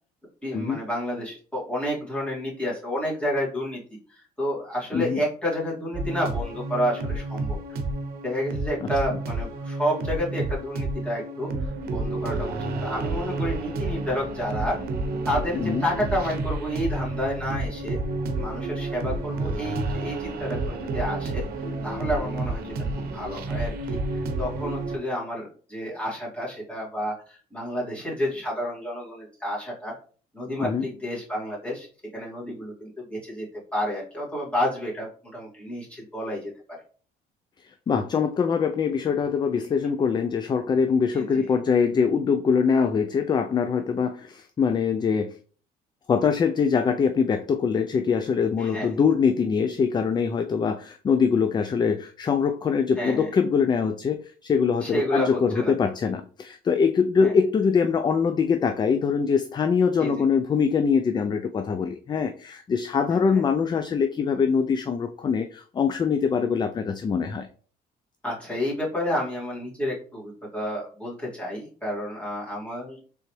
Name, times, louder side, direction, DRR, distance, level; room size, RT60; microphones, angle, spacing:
voice 1, 0.4-3.8 4.1-7.6 8.2-14.8 15.3-18.0 18.4-29.9 30.3-31.9 32.1-33.4 33.7-36.5 41.1-41.5 48.6-49.0 53.0-53.3 54.8-55.7 57.2-57.3 60.0-60.2 63.1-63.4 68.2-73.0, equal, 5° left, -6 dB, 2.2 m, -30 dB
sound 1, 5.9-25.0, right 2 dB, 65° right, 0.8 m, -30 dB
voice 2, 15.5-15.8 30.6-30.9 37.9-45.4 46.1-67.5, left 6 dB, 25° left, 8 dB, 0.3 m, -23 dB
3.8 x 3.4 x 3.1 m, 0.42 s
cardioid pair, 110°, 17 cm